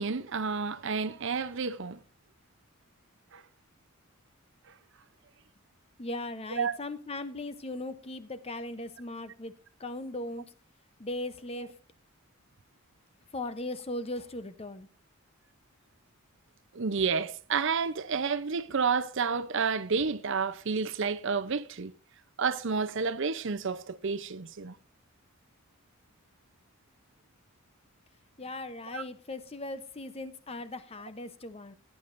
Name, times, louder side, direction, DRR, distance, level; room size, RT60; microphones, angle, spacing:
voice 1, 0.0-2.0 3.3-3.4 6.6-6.8 16.7-21.9 22.4-24.7 28.9-29.0, right 5 dB, 60° right, 0.6 m, -30 dB
voice 2, 6.0-9.5 9.8-10.5 11.0-11.8 13.3-14.9 28.4-31.8, left 2 dB, 25° left, 0.7 m, -38 dB
17.0 x 9.4 x 2.6 m
head